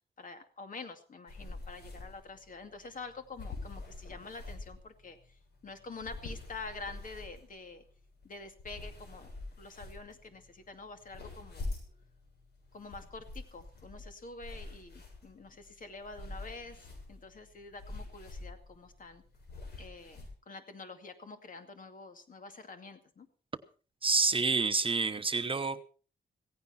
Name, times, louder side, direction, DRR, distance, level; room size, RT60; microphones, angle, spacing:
voice 1, 0.2-7.8 8.2-9.3 9.6-11.7 12.7-19.2 19.8-23.3, left 3 dB, 50° left, 7 dB, 2.4 m, -47 dB
sound 1, 1.3-20.3, left 2 dB, 75° left, 7.4 m, -46 dB
voice 2, 24.0-25.8, right 4 dB, 30° right, 10 dB, 0.9 m, -28 dB
17.0 x 15.5 x 4.3 m, 0.39 s
cardioid pair, 105°, 17 cm